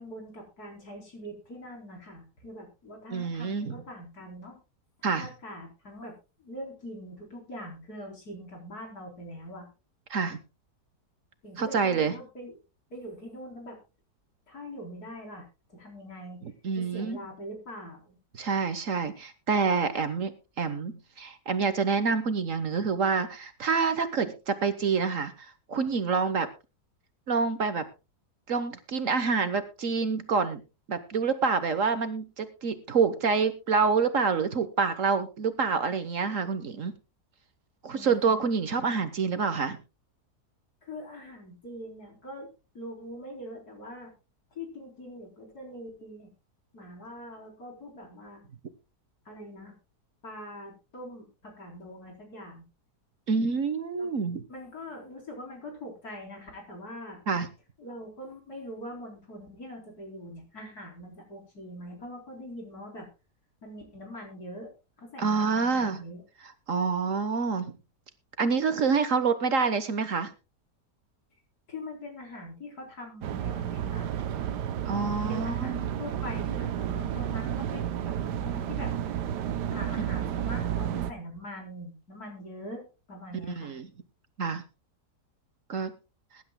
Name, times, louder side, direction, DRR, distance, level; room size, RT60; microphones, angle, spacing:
voice 1, 0.0-4.6 5.0-9.7 11.4-12.6 12.9-13.8 14.5-16.4 16.8-18.2 37.9-38.6 40.8-44.1 44.5-46.3 46.7-48.4 49.3-49.7 50.2-52.6 54.0-54.1 54.5-57.2 57.8-63.1 63.6-64.7 65.0-66.2 71.7-74.1 75.3-79.1 79.7-83.8, left 1 dB, 65° left, 1 dB, 4.5 m, -43 dB
voice 2, 3.1-3.8 5.0-5.3 10.1-10.4 11.6-12.1 16.4-17.2 18.3-26.5 27.3-27.8 28.5-30.6 30.9-37.0 37.8-39.8 53.3-54.4 57.3-57.5 65.2-66.0 66.7-67.7 68.4-70.3 74.8-75.9 83.5-83.9 84.4-84.6 85.7-85.9, right 5 dB, 55° right, 11 dB, 1.4 m, -27 dB
sound 1, 73.2-81.1, right 10 dB, 90° right, 1.4 m, -31 dB
22.0 x 11.0 x 2.2 m, 0.29 s
omnidirectional pair, 1.7 m